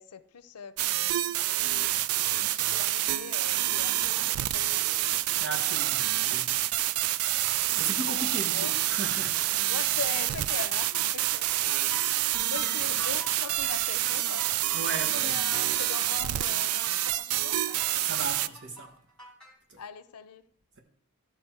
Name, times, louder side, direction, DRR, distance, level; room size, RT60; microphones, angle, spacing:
voice 1, 0.0-1.9 2.4-4.9 8.5-8.7 9.7-11.5 11.8-12.0 12.5-14.5 14.9-17.8 19.8-20.5, left 6 dB, 90° left, 0.6 m, -41 dB
sound 1, 0.8-18.5, right 14 dB, 75° right, 0.3 m, -27 dB
voice 2, 5.4-6.6 7.8-9.8 14.7-15.4 18.0-18.9 19.7-19.8, right 2 dB, 50° right, 1.4 m, -37 dB
sound 2, 10.9-19.5, equal, 5° left, 2.2 m, -45 dB
13.5 x 6.0 x 4.5 m
head